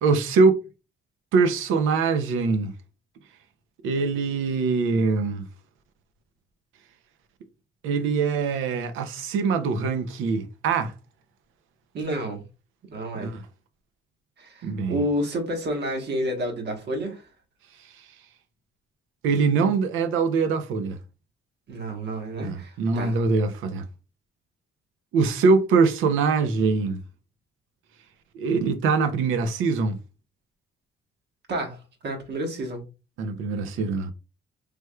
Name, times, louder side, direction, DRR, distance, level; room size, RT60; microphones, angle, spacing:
voice 1, 0.0-0.6 1.3-2.7 3.8-5.5 7.8-10.9 13.1-13.4 14.6-15.0 19.2-21.0 22.4-23.8 25.1-27.0 28.3-30.0 33.2-34.1, right 4 dB, 90° right, 0.6 m, -23 dB
voice 2, 11.9-12.4 12.9-13.3 14.4-17.2 21.7-23.2 31.5-31.8 32.0-32.8, equal, 60° right, 1.1 m, -30 dB
3.4 x 3.0 x 2.2 m
cardioid pair, 90°, 20 cm